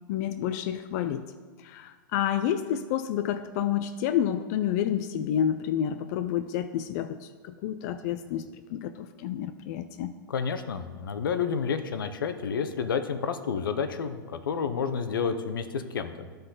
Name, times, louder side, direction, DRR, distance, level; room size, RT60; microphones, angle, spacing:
voice 1, 0.1-1.3 1.6-10.1, left 10 dB, 50° left, 9 dB, 0.4 m, -29 dB
voice 2, 10.3-16.1, left 6 dB, 85° left, 9 dB, 0.7 m, -30 dB
11.5 x 3.9 x 3.9 m, 1.5 s
hypercardioid pair, 115°, 11 cm